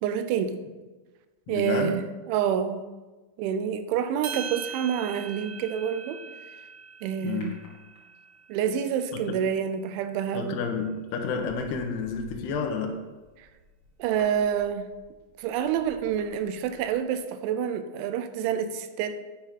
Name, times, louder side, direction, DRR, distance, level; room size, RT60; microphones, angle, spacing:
voice 1, 0.0-0.6 1.5-2.0 2.3-2.8 3.4-6.2 7.0-7.5 8.5-10.6 13.4-13.5 14.0-14.9 15.4-19.2, right 8 dB, 90° right, 10 dB, 3.1 m, -28 dB
voice 2, 1.5-2.0 7.2-7.6 9.1-9.2 10.3-13.0, left 5 dB, 70° left, 3 dB, 2.9 m, -30 dB
sound 1, 4.2-8.6, right 7 dB, 65° right, 1.8 m, -40 dB
sound 2, 7.4-8.4 10.3-10.6 11.1-17.3 17.5-17.6, left 2 dB, 40° left, 1.6 m, -53 dB
11.5 x 9.4 x 3.7 m, 1.3 s
omnidirectional pair, 5.2 m